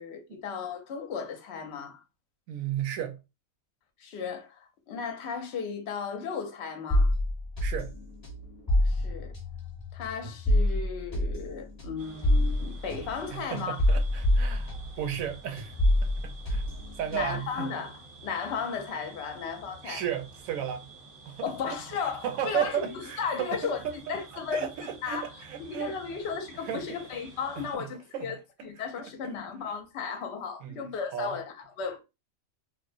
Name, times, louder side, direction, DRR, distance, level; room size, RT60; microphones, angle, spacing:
voice 1, 0.0-2.0 4.0-7.1 8.8-9.3 9.9-13.8 17.1-20.0 21.4-23.8 24.1-24.7 25.0-25.3 25.6-28.4 28.6-32.0, left 6 dB, 60° left, 0.8 m, -35 dB
voice 2, 2.5-3.2 7.6-7.9 13.3-16.6 17.0-17.8 19.8-20.9 21.2-21.8 22.2-25.9 26.5-26.8 27.6-27.9 28.1-28.3 29.0-29.4 30.6-31.4, right 9 dB, 80° right, 1.0 m, -34 dB
sound 1, 6.9-15.3 15.6-17.5, left 1 dB, 30° left, 1.0 m, -27 dB
sound 2, 12.0-27.8, right 3 dB, 50° right, 0.7 m, -50 dB
2.9 x 2.0 x 2.5 m
omnidirectional pair, 1.4 m